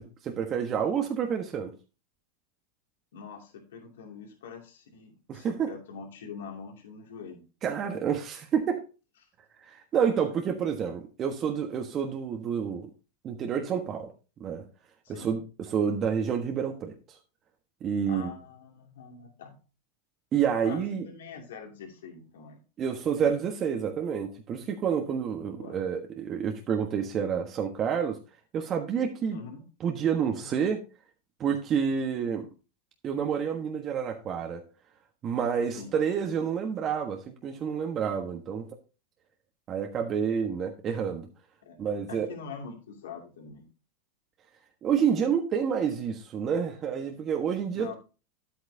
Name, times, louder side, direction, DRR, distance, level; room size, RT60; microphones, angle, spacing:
voice 1, 0.0-1.7 5.3-5.7 7.6-8.8 9.6-12.9 13.2-14.1 14.4-14.6 15.1-17.2 17.8-18.3 20.3-21.0 22.8-28.2 28.5-29.4 29.8-30.8 31.4-32.5 33.0-34.6 35.2-38.7 39.7-41.3 41.8-42.3 44.8-47.9, right 7 dB, 35° right, 1.3 m, -29 dB
voice 2, 3.1-7.4 10.6-10.7 15.0-15.3 18.1-19.6 20.6-22.6 25.6-25.8 29.3-29.6 30.4-30.5 35.8-35.9 41.6-41.8 42.1-43.7 47.7-47.9, left 5 dB, 80° left, 2.4 m, -44 dB
10.5 x 8.3 x 2.7 m
hypercardioid pair, 105°, 0 cm